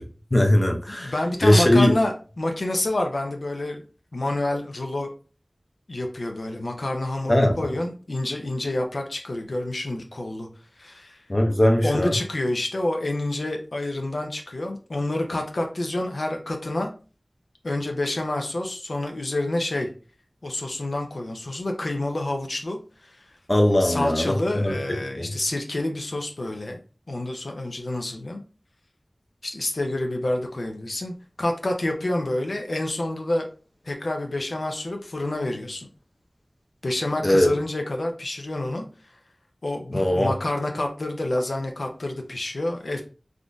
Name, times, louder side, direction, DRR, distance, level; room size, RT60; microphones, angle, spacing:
voice 1, 0.3-1.1 1.4-1.9 7.3-7.5 11.3-12.1 23.5-25.3 37.2-37.5 39.9-40.3, left 1 dB, 35° left, 0.6 m, -20 dB
voice 2, 0.9-3.8 4.1-5.1 5.9-10.5 10.8-11.2 11.8-16.9 17.6-19.9 20.4-23.2 23.8-26.8 27.1-28.4 29.4-33.5 33.8-35.9 36.8-38.8 39.6-43.0, left 1 dB, 85° left, 0.5 m, -28 dB
3.5 x 2.5 x 2.2 m
wide cardioid pair, 50°, 0 cm